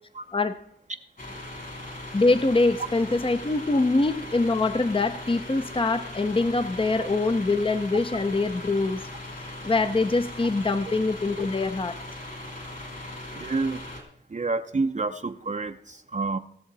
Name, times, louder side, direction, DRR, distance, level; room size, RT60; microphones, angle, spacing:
sound 1, 1.2-14.0, left 1 dB, 50° left, 3.5 m, -39 dB
voice 1, 2.1-11.9, left 3 dB, 30° left, 10 dB, 0.7 m, -24 dB
voice 2, 13.3-13.8 14.3-16.4, right 3 dB, 40° right, 7 dB, 0.7 m, -28 dB
18.0 x 7.1 x 4.1 m, 0.70 s
cardioid pair, 55°, 18 cm